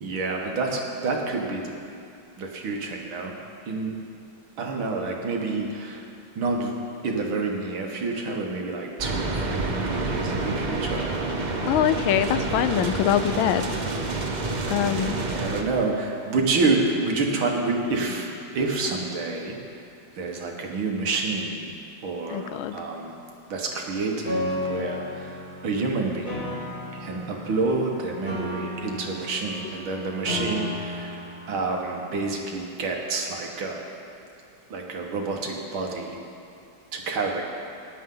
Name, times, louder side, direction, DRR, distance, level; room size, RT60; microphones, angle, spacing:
voice 1, 0.0-1.7 2.4-3.3 3.7-3.9 4.6-6.1 6.4-6.7 7.0-11.1 15.2-19.6 20.2-21.7 22.0-23.2 23.5-26.5 27.0-33.8 34.7-36.2 36.9-37.4, right 3 dB, 85° right, 1 dB, 2.3 m, -28 dB
sound 1, 9.0-15.6, right 3 dB, 55° right, 0.5 m, -28 dB
voice 2, 11.7-13.7 14.7-15.2 22.3-22.8, left 10 dB, 85° left, 11 dB, 1.4 m, -23 dB
Piano, 24.3-32.2, left 1 dB, 20° left, 2.8 m, -34 dB
19.0 x 11.0 x 3.9 m, 2.5 s
omnidirectional pair, 2.2 m